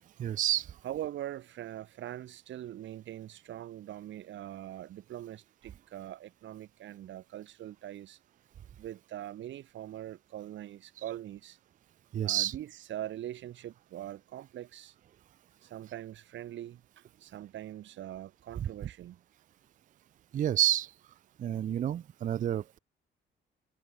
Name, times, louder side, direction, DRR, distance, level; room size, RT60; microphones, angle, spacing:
voice 1, 0.2-0.7 12.1-12.6 18.6-18.7 20.3-20.9 21.4-22.8, right 12 dB, 40° right, 0.4 m, -29 dB
voice 2, 0.8-8.2 8.8-11.6 12.2-14.9 15.6-19.2, right 12 dB, 70° right, 1.2 m, -42 dB
cardioid pair, 90°, 20 cm